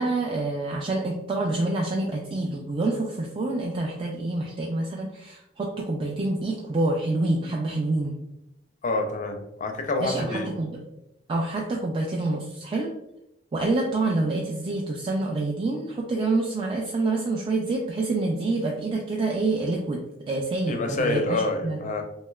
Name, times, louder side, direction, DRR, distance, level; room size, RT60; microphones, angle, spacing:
voice 1, 0.0-8.2 10.0-10.8 11.3-12.9 13.5-21.8, right 2 dB, 25° right, -2 dB, 0.3 m, -27 dB
voice 2, 8.8-10.5 20.7-22.0, left 2 dB, 40° left, 5 dB, 0.4 m, -27 dB
3.1 x 2.7 x 2.3 m, 0.85 s
head